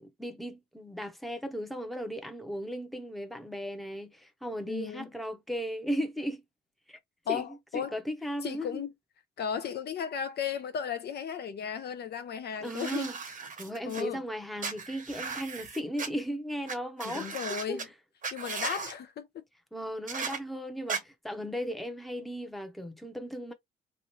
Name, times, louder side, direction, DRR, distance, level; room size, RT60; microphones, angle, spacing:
voice 1, 0.0-6.4 6.9-7.0 7.3-7.4 7.7-8.8 12.6-13.2 13.6-17.4 17.7-17.8 19.7-23.5, equal, ahead, 0.7 m, -36 dB
voice 2, 4.7-5.1 7.3-8.0 8.4-8.9 9.4-13.1 13.9-14.2 17.0-17.9 18.3-19.4, left 8 dB, 55° left, 0.5 m, -35 dB
sound 1, 12.6-14.0 14.6-16.1 16.7-16.8 17.0-17.8 18.2-18.9 20.1-20.4 20.9-21.0, right 5 dB, 40° right, 0.9 m, -37 dB
3.0 x 2.4 x 2.9 m
cardioid pair, 90°, 20 cm